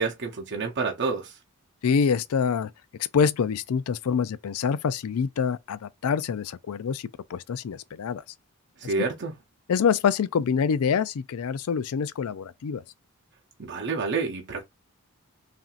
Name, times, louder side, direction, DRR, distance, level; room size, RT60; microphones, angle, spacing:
voice 1, 0.0-1.4 8.8-9.3 13.6-14.7, right 4 dB, 50° right, 0.7 m, -28 dB
voice 2, 1.8-2.7 3.1-8.2 8.8-8.9 9.7-12.8, left 6 dB, 70° left, 0.4 m, -26 dB
5.6 x 2.7 x 2.4 m
head